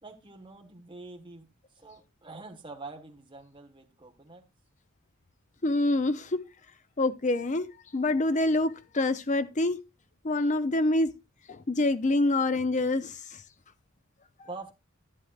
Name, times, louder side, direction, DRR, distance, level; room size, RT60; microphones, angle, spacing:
voice 1, 0.0-4.4 14.4-14.7, right 3 dB, 25° right, 1.4 m, -45 dB
voice 2, 5.6-6.4 7.0-9.8 10.2-11.1 11.5-13.2, left 2 dB, 35° left, 0.6 m, -26 dB
11.5 x 10.5 x 2.5 m
head